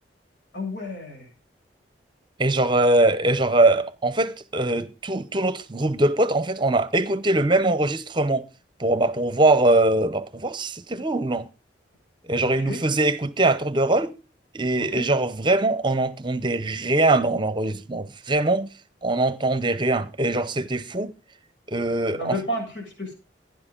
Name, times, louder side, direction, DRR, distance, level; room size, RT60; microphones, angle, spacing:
voice 1, 0.5-1.3 12.4-12.8 14.8-15.1 22.1-23.1, left 1 dB, 80° left, 7.5 m, -32 dB
voice 2, 2.4-8.5 8.8-11.5 12.3-14.1 14.5-18.7 19.0-21.1 21.7-22.4, right 2 dB, 25° right, 0.8 m, -22 dB
16.0 x 10.5 x 3.9 m
head